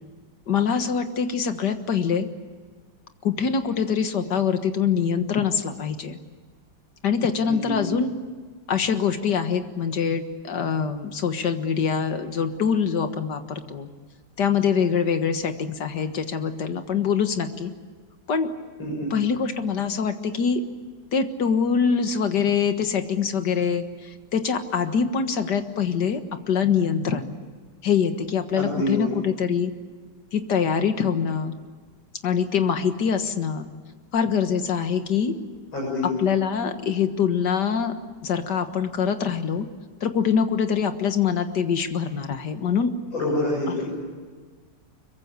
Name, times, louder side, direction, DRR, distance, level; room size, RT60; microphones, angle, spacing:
voice 1, 0.5-2.3 3.2-6.2 7.0-8.1 8.7-13.9 14.4-17.7 18.3-18.5 19.1-20.6 21.1-26.2 26.5-27.3 27.8-29.7 30.3-31.5 32.2-33.7 34.1-35.3 36.2-37.9 38.2-39.7 40.0-42.9, left 6 dB, 60° left, 8 dB, 2.1 m, -24 dB
voice 2, 7.5-8.0 18.8-19.1 28.5-29.1 35.7-36.1 43.1-43.9, left 1 dB, 85° left, -5 dB, 7.9 m, -27 dB
25.0 x 23.0 x 8.3 m, 1.5 s
omnidirectional pair, 2.1 m